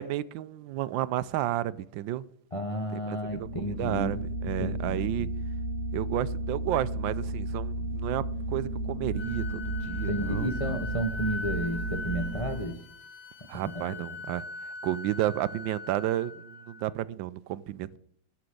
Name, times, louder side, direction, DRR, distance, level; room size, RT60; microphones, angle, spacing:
voice 1, 0.0-2.2 2.9-5.3 5.9-10.8 13.5-18.0, right 13 dB, 75° right, 1.2 m, -32 dB
voice 2, 2.5-4.2 4.6-5.1 10.1-12.8 13.7-14.2, equal, 45° left, 0.4 m, -32 dB
sound 1, 3.2-12.5, right 1 dB, 65° left, 3.2 m, -33 dB
Wind instrument woodwind instrument, 9.2-16.9, left 3 dB, 90° left, 2.2 m, -41 dB
11.5 x 6.1 x 7.7 m
omnidirectional pair, 2.3 m